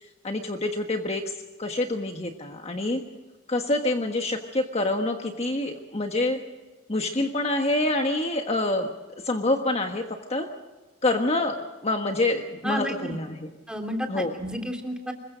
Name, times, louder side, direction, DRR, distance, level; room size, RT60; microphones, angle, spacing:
voice 1, 0.2-3.0 3.5-6.4 6.9-8.9 9.2-10.0 10.3-10.5 11.0-13.5 14.1-14.3, left 2 dB, 30° left, 4 dB, 1.4 m, -26 dB
voice 2, 12.6-13.2 13.7-15.1, equal, 5° right, 3 dB, 3.1 m, -31 dB
26.0 x 22.5 x 5.1 m, 1.2 s
head